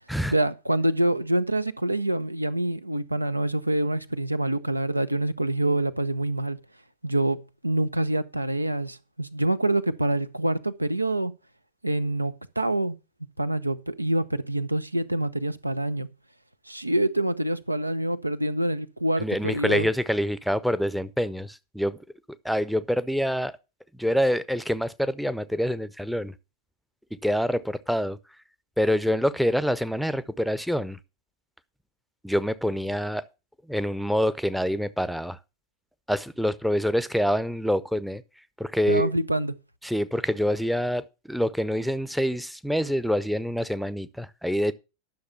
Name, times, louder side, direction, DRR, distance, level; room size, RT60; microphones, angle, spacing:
voice 1, 0.3-6.6 7.0-11.3 11.8-13.0 13.4-16.1 16.7-19.9 38.9-39.5, right 1 dB, 85° right, 0.6 m, -26 dB
voice 2, 19.2-22.0 22.4-23.5 23.9-26.3 27.2-28.2 28.8-31.0 32.2-33.2 33.7-35.4 36.1-38.2 38.6-39.1 39.8-44.7, equal, ahead, 0.6 m, -26 dB
11.5 x 6.6 x 5.7 m
figure-of-eight pair, 90°, 0 cm